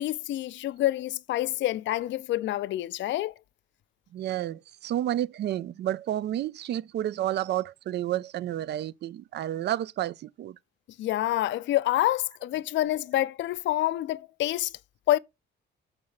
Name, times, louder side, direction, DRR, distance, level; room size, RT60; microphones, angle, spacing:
voice 1, 0.0-3.3 11.0-14.7 15.1-15.2, left 14 dB, 70° left, 0.4 m, -27 dB
voice 2, 4.1-10.6, right 12 dB, 60° right, 0.4 m, -30 dB
6.3 x 4.5 x 5.6 m
cardioid pair, 90°, 20 cm